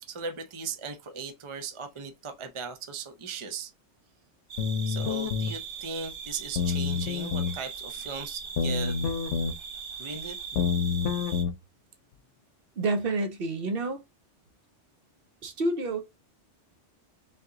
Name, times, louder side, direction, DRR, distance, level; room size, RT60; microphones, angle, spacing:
voice 1, 0.0-3.7 4.9-9.0 10.0-10.4, right 5 dB, 35° right, 0.5 m, -38 dB
sound 1, 4.5-11.4, right 6 dB, 85° right, 1.1 m, -40 dB
sound 2, 4.6-5.5 6.5-7.6 8.6-9.5 10.5-11.5, left 6 dB, 85° left, 0.9 m, -28 dB
voice 2, 12.8-14.0 15.4-16.0, right 2 dB, 55° right, 0.9 m, -28 dB
3.7 x 2.8 x 3.7 m
omnidirectional pair, 1.2 m